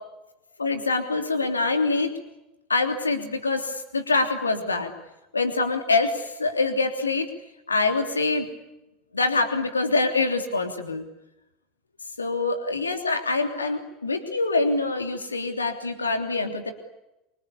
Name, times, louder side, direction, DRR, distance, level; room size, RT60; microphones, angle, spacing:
voice 1, 0.6-2.1 2.7-4.9 5.3-7.3 7.7-8.5 9.1-11.1 12.2-16.7, left 3 dB, 80° left, 7 dB, 3.2 m, -25 dB
27.5 x 25.5 x 8.6 m, 0.94 s
figure-of-eight pair, 75°, 0 cm